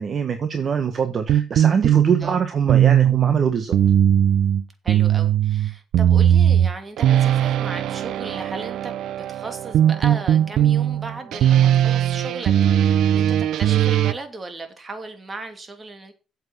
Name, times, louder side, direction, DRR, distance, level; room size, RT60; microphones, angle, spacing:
voice 1, 0.0-3.7, right 6 dB, 45° right, 1.2 m, -23 dB
sound 1, 1.3-14.1, right 10 dB, 70° right, 0.5 m, -19 dB
voice 2, 4.8-8.9 9.3-16.1, right 3 dB, 25° right, 2.6 m, -36 dB
8.3 x 7.4 x 5.7 m
cardioid pair, 105°, 0 cm